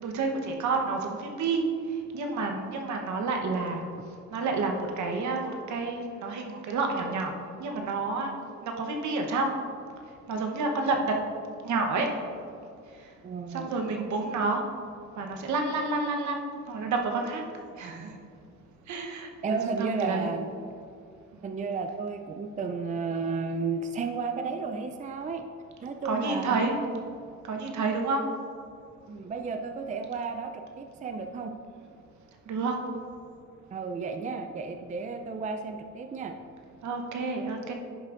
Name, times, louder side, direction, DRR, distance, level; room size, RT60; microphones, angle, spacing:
voice 1, 0.0-1.6 2.1-3.8 4.3-7.3 7.6-8.3 8.6-9.5 10.3-11.1 11.6-12.1 13.5-14.6 15.2-16.4 16.7-17.4 17.8-18.2 18.9-20.3 26.0-26.7 27.5-28.2 32.5-32.7 36.8-37.7, right 3 dB, 70° right, 3 dB, 1.1 m, -29 dB
voice 2, 13.2-13.8 19.4-20.5 21.4-25.5 25.8-26.7 29.1-30.5 30.8-31.5 33.7-36.3, right 4 dB, 25° right, 6 dB, 0.4 m, -33 dB
11.0 x 6.1 x 2.5 m, 2.4 s
cardioid pair, 90°, 30 cm